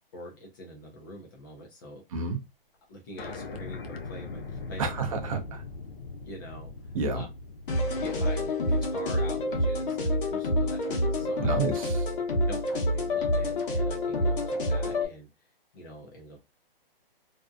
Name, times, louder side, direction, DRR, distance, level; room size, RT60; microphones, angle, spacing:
voice 1, 0.1-2.3 2.9-5.0 6.2-7.3 7.9-8.4 8.7-11.6 12.5-15.3 15.7-16.4, equal, 20° left, 0.4 m, -45 dB
sound 1, 3.2-8.5, left 3 dB, 90° left, 0.6 m, -40 dB
voice 2, 4.8-5.6 6.9-7.2 11.4-12.0, right 4 dB, 35° right, 0.5 m, -30 dB
sound 2, 7.7-15.1, left 1 dB, 65° left, 1.0 m, -27 dB
2.6 x 2.1 x 2.4 m
hypercardioid pair, 140°, 29 cm